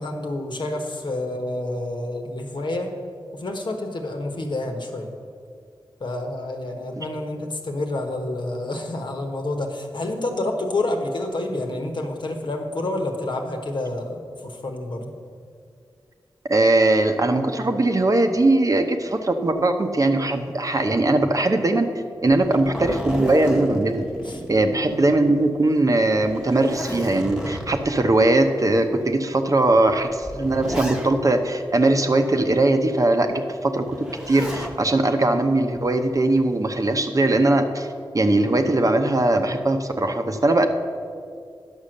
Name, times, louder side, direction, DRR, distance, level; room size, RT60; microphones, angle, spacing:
voice 1, 0.0-2.9 3.3-5.1 6.0-15.1 24.2-24.4, left 2 dB, 60° left, 3 dB, 1.3 m, -28 dB
voice 2, 16.5-21.9 22.2-24.1 24.5-33.9 34.3-37.9 38.1-40.7, right 2 dB, 40° right, 6 dB, 0.8 m, -20 dB
Zipper (clothing), 22.3-25.2 25.5-25.6 26.2-28.0 28.8-28.9 29.9-31.4 33.9-34.8 36.1-36.6, equal, 5° right, 1.1 m, -32 dB
10.0 x 6.3 x 6.4 m, 2.3 s
cardioid pair, 65°, 9 cm